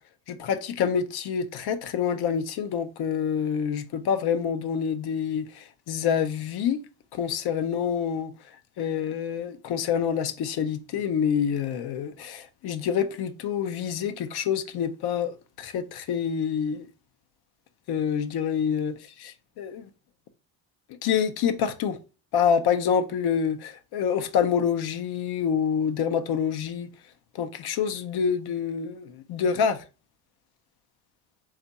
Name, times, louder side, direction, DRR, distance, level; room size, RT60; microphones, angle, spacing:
voice 1, 0.3-6.8 7.1-8.3 8.8-16.9 17.9-19.0 19.6-19.9 21.0-22.0 22.3-26.9 27.3-29.8, left 7 dB, 55° left, 0.7 m, -27 dB
3.5 x 2.4 x 4.0 m
supercardioid pair, 70°, 46 cm